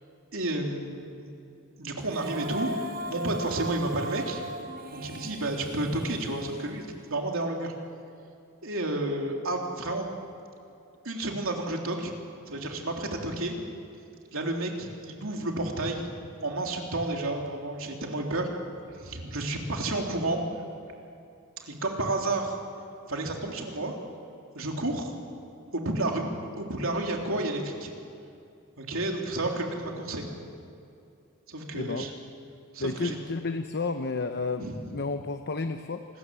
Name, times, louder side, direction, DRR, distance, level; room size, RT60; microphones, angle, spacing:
voice 1, 0.3-1.3 1.8-2.7 3.1-4.4 4.9-7.7 8.6-10.1 11.0-12.1 12.5-13.5 14.3-16.1 16.4-18.5 18.9-20.4 21.6-22.6 23.1-23.9 24.5-25.1 25.7-26.3 26.6-27.9 28.8-30.3 31.5-32.1 32.7-33.2 34.6-34.7, right 2 dB, 70° right, 1 dB, 3.5 m, -31 dB
Female singing, 2.0-7.2, right 1 dB, 45° right, 1.1 m, -38 dB
voice 2, 31.7-32.1 32.8-36.1, left 3 dB, 50° left, 7 dB, 0.9 m, -31 dB
27.5 x 21.0 x 7.7 m, 2.6 s
head